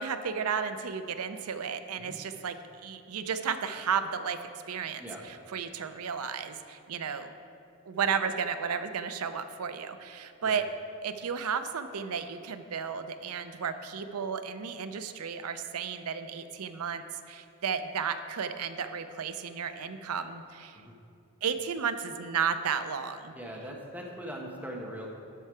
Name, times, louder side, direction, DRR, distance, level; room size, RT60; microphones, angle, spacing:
voice 1, 0.0-4.4 4.7-7.3 7.9-10.6 11.0-20.8 21.4-23.3, right 6 dB, 85° right, 10 dB, 0.5 m, -33 dB
voice 2, 23.3-25.1, equal, 10° right, -2 dB, 1.1 m, -41 dB
12.5 x 5.5 x 4.8 m, 2.6 s
head